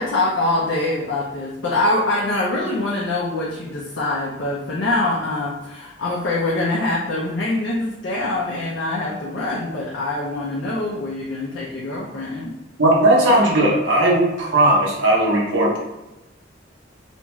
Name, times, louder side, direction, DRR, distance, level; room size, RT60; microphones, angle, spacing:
voice 1, 0.0-12.5, left 2 dB, 80° left, -4 dB, 0.5 m, -24 dB
voice 2, 12.8-15.8, right 1 dB, 90° right, -3 dB, 0.8 m, -17 dB
2.5 x 2.2 x 3.0 m, 1.0 s
head